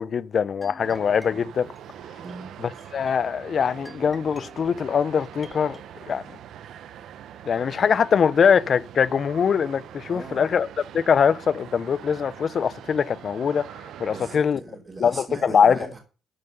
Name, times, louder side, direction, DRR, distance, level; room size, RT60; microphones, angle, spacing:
voice 1, 0.0-1.7 2.6-5.8 6.1-6.2 7.4-10.7 10.9-13.7 14.0-14.6 15.0-15.8, left 7 dB, 50° left, 0.6 m, -22 dB
sound 1, 0.6-5.9, left 1 dB, 5° left, 2.2 m, -49 dB
sound 2, 0.8-14.4, right 10 dB, 75° right, 0.7 m, -43 dB
voice 2, 2.2-2.5 10.1-10.4 14.1-16.0, right 3 dB, 30° right, 3.2 m, -39 dB
13.0 x 5.8 x 5.4 m
cardioid pair, 90°, 0 cm